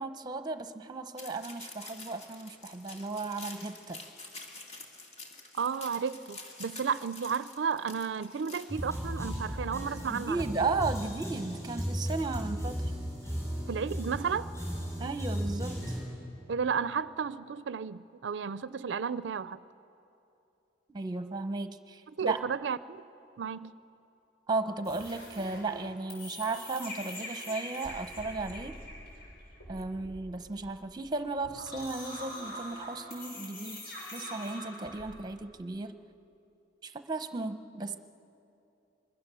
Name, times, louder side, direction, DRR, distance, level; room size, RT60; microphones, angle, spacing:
voice 1, 0.0-4.0 10.1-12.8 15.0-16.0 20.9-22.4 24.5-28.8 29.7-33.9 34.1-36.0 36.8-38.0, right 3 dB, 25° right, 9 dB, 0.9 m, -35 dB
sound 1, 1.2-8.6, left 2 dB, 35° left, 2.7 m, -47 dB
voice 2, 5.5-10.4 13.7-14.5 16.5-19.6 22.2-23.0 23.4-23.7, right 6 dB, 80° right, 15 dB, 0.4 m, -33 dB
sound 2, 8.7-16.0, equal, 15° left, 7.3 m, -35 dB
sound 3, 24.8-35.1, left 1 dB, 60° left, 7.3 m, -44 dB
26.0 x 22.5 x 6.9 m, 2.8 s
head